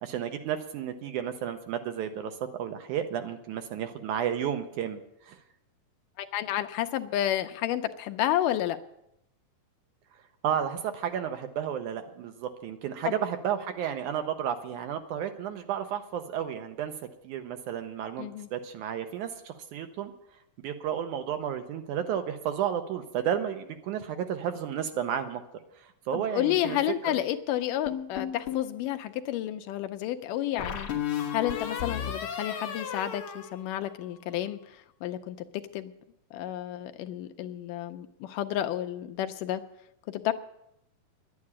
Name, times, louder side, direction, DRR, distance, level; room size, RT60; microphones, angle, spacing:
voice 1, 0.0-5.0 5.3-5.4 10.4-16.9 17.2-20.1 20.6-25.4 25.8-26.8 27.0-27.1, right 9 dB, 75° right, 7 dB, 2.0 m, -32 dB
voice 2, 6.2-8.8 13.0-13.2 18.2-18.5 26.1-30.9 31.3-35.4 35.7-35.9 36.3-39.6 40.1-40.3, left 12 dB, 80° left, 8 dB, 2.1 m, -31 dB
sound 1, 27.9-28.7 30.6-34.2, left 8 dB, 50° left, 1.9 m, -34 dB
11.0 x 9.6 x 8.6 m, 0.81 s
omnidirectional pair, 4.0 m